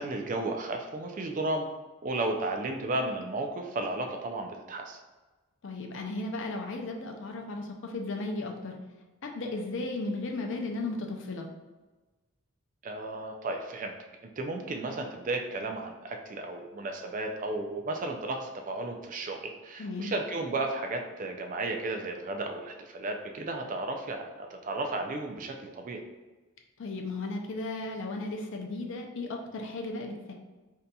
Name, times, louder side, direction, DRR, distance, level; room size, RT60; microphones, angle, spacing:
voice 1, 0.0-1.7 2.0-5.0 12.8-13.9 14.4-26.0, right 2 dB, 35° right, 3 dB, 0.3 m, -34 dB
voice 2, 5.6-8.8 9.2-11.5 19.8-20.1 26.8-30.3, left 2 dB, 55° left, 2 dB, 0.5 m, -35 dB
3.9 x 2.7 x 2.2 m, 1.2 s
head